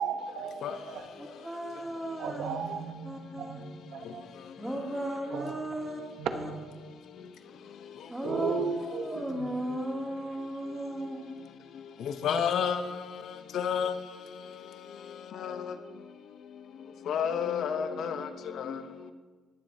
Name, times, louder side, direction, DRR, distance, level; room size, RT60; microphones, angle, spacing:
voice 1, 0.0-1.1 2.2-4.2 5.3-5.5 6.2-6.6 8.2-9.5, right 6 dB, 85° right, 7 dB, 0.9 m, -35 dB
voice 2, 1.2-2.6 3.0-3.6 4.6-6.0 6.3-6.5 8.1-11.3, right 1 dB, 10° right, -3 dB, 2.6 m, -36 dB
voice 3, 12.2-12.8 13.5-13.9 15.4-15.6 17.1-18.3 18.6-18.8, left 7 dB, 75° left, 9 dB, 0.8 m, -29 dB
20.5 x 7.3 x 2.7 m, 1.4 s
cardioid pair, 90°, 0 cm